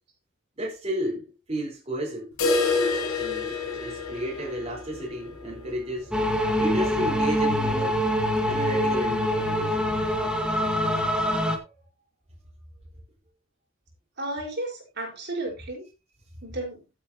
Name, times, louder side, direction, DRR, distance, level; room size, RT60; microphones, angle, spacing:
voice 1, 0.6-2.3 3.2-6.2 6.6-8.0 8.5-9.9 11.6-11.7, equal, 30° right, 4.3 m, -32 dB
sound 1, 2.4-8.2 8.5-8.6 9.0-9.1 9.6-9.7 10.5-10.6, left 3 dB, 80° left, 4.1 m, -30 dB
sound 2, 6.1-11.6, equal, 5° right, 1.5 m, -24 dB
voice 2, 14.2-15.8 16.4-16.8, right 2 dB, 55° right, 4.6 m, -33 dB
14.5 x 8.5 x 2.9 m
head